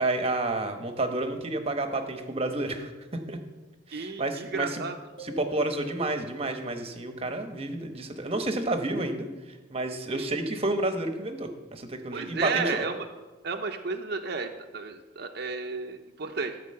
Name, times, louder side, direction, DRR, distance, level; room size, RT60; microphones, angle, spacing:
voice 1, 0.0-2.9 3.3-3.4 3.9-4.8 5.2-9.3 9.7-12.8, right 2 dB, 30° right, 6 dB, 1.0 m, -30 dB
voice 2, 3.9-4.9 10.1-10.2 12.1-13.0 13.4-16.5, right 4 dB, 55° right, 3 dB, 0.7 m, -32 dB
sound 1, 5.2-6.7, right 3 dB, 40° left, 2.1 m, -46 dB
13.5 x 5.0 x 7.7 m, 1.2 s
head